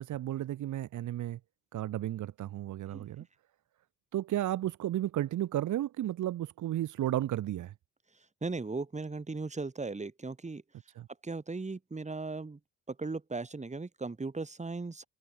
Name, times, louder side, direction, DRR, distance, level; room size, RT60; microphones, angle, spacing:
voice 1, 0.0-1.4 1.7-3.3 4.1-7.7 11.0-11.1, right 13 dB, 80° right, 3.6 m, -33 dB
voice 2, 8.4-10.6 11.2-12.6 12.9-15.1, right 3 dB, 25° right, 6.4 m, -37 dB
open air
cardioid pair, 90°, 30 cm